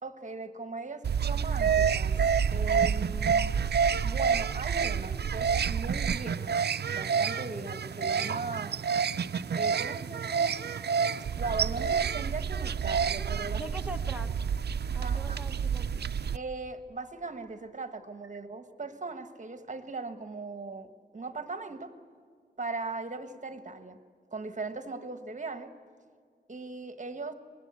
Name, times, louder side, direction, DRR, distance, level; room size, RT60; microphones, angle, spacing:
voice 1, 0.0-2.2 2.5-3.5 4.0-6.5 6.9-8.8 9.5-10.6 11.4-13.6 15.0-15.4 16.3-21.9 22.6-24.0 24.3-25.7 26.5-27.3, right 3 dB, 45° right, 9 dB, 1.5 m, -38 dB
sound 1, 1.0-16.4, right 6 dB, 70° right, 0.5 m, -28 dB
voice 2, 13.6-14.5 14.9-16.0, right 1 dB, 5° right, 3 dB, 1.1 m, -42 dB
25.0 x 21.0 x 8.3 m, 2.1 s
wide cardioid pair, 110°, 18 cm